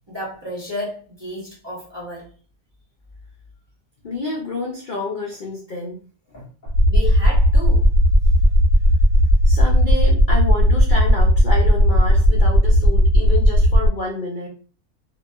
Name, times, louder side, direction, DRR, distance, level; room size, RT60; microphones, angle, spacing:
voice 1, 0.1-2.3 6.9-8.0, left 1 dB, 25° right, 0.7 m, -32 dB
voice 2, 4.0-6.0 6.3-6.7 9.4-14.5, left 3 dB, 60° left, 0.5 m, -29 dB
sound 1, 6.7-13.9, equal, 85° right, 1.1 m, -15 dB
2.9 x 2.5 x 2.2 m
omnidirectional pair, 1.6 m